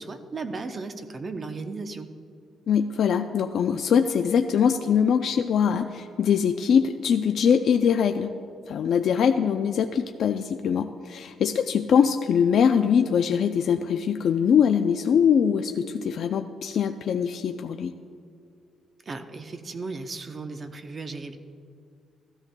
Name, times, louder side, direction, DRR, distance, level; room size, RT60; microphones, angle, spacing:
voice 1, 0.0-2.1 19.1-21.4, right 3 dB, 35° right, 7 dB, 0.6 m, -35 dB
voice 2, 2.7-8.4 8.7-17.9, left 7 dB, 60° left, 7 dB, 0.4 m, -22 dB
15.0 x 13.0 x 2.2 m, 2.3 s
cardioid pair, 130°, 0 cm